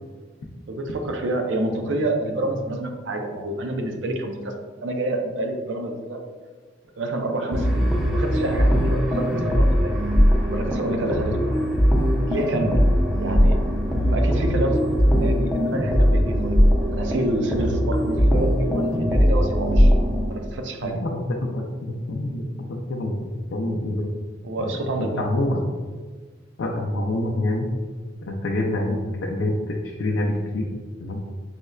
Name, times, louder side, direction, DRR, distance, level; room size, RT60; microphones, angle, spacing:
voice 1, 0.7-4.5 4.8-6.2 7.0-9.9 10.5-11.6 12.3-12.8 13.2-13.6 14.1-16.6 16.9-19.9 20.3-21.0 24.4-25.5, right 1 dB, 75° right, 3 dB, 0.5 m, -28 dB
sound 1, 7.5-20.3, equal, ahead, 0.5 m, -20 dB
voice 2, 20.8-21.6 22.1-23.1 23.5-24.1 24.9-25.6 26.6-27.7 28.2-30.7 31.0-31.2, left 1 dB, 75° left, -2 dB, 0.4 m, -26 dB
5.2 x 2.1 x 2.3 m, 1.4 s
head